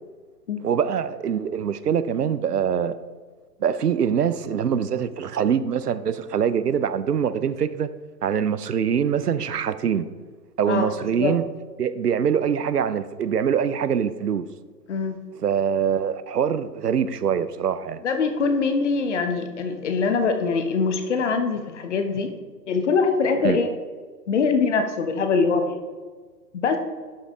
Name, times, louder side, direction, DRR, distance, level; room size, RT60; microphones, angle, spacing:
voice 1, 0.6-2.9 3.6-7.9 8.2-10.1 10.6-11.4 11.8-14.5 15.4-18.0 23.4-23.6, right 8 dB, 70° right, 0.7 m, -24 dB
voice 2, 18.0-22.3 22.7-23.7 24.3-25.8 26.5-26.8, left 4 dB, 45° left, 1.1 m, -23 dB
11.5 x 5.2 x 3.7 m
figure-of-eight pair, 125°, 49 cm